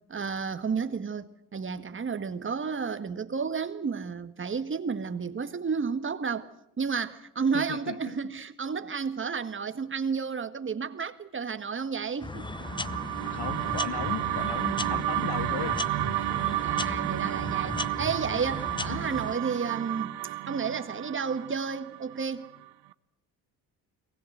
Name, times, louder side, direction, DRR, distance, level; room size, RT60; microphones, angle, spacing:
voice 1, 0.1-6.5 6.8-12.5 16.2-20.2 20.5-22.5, right 5 dB, 30° right, 1.7 m, -32 dB
voice 2, 7.5-8.2 13.3-15.8 18.9-19.2, left 10 dB, 65° left, 1.9 m, -37 dB
sound 1, 12.2-19.4, left 3 dB, 10° left, 0.8 m, -36 dB
sound 2, 12.3-22.6, right 16 dB, 75° right, 1.1 m, -31 dB
23.0 x 19.5 x 8.0 m
supercardioid pair, 90°, 41 cm